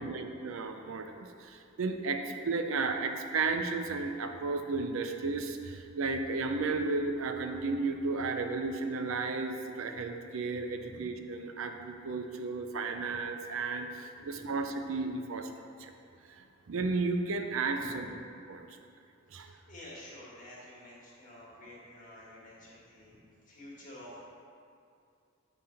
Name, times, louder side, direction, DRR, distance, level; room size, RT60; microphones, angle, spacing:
voice 1, 0.0-15.5 15.8-15.9 16.3-18.1 18.5-18.7 19.3-19.5, right 3 dB, 80° right, 6 dB, 0.5 m, -33 dB
voice 2, 14.2-14.5 17.7-18.1 19.3-24.2, left 1 dB, 40° left, -5 dB, 1.7 m, -50 dB
7.5 x 3.5 x 5.6 m, 2.4 s
head